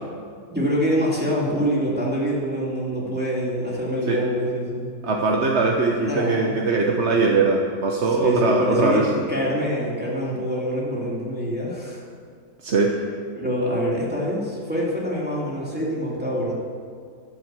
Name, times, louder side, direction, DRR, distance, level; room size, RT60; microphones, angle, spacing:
voice 1, 0.5-4.9 6.0-6.6 8.0-12.0 13.3-16.5, equal, 5° right, -6 dB, 2.7 m, -25 dB
voice 2, 5.0-9.1 12.6-13.0, right 3 dB, 45° right, 0 dB, 1.0 m, -21 dB
13.0 x 7.7 x 7.7 m, 2.2 s
omnidirectional pair, 1.9 m